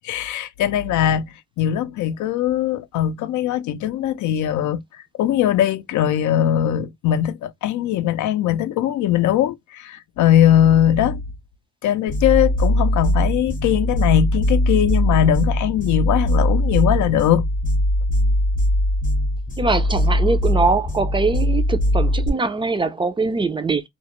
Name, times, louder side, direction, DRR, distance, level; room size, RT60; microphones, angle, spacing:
voice 1, 0.0-1.2 1.6-4.8 5.2-11.2 11.8-17.5, left 11 dB, 75° left, 0.5 m, -20 dB
sound 1, 12.1-22.3, left 1 dB, 25° left, 0.7 m, -20 dB
voice 2, 19.6-23.8, right 3 dB, 15° right, 0.4 m, -22 dB
2.3 x 2.0 x 2.9 m
cardioid pair, 90°, 30 cm